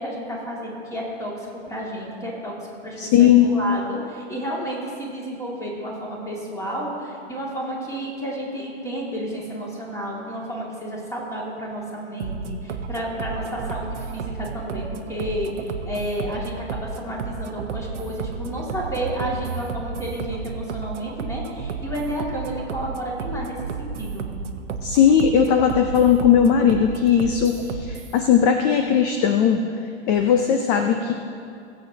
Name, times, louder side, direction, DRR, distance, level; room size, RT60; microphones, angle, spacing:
voice 1, 0.0-2.5 2.8-24.3, equal, 10° left, -4 dB, 2.4 m, -31 dB
voice 2, 3.0-3.5 24.8-29.8 30.1-31.1, left 8 dB, 35° left, 6 dB, 0.6 m, -18 dB
sound 1, 12.2-28.2, right 5 dB, 85° right, 0.9 m, -32 dB
20.5 x 7.8 x 2.9 m, 2.4 s
hypercardioid pair, 125°, 35 cm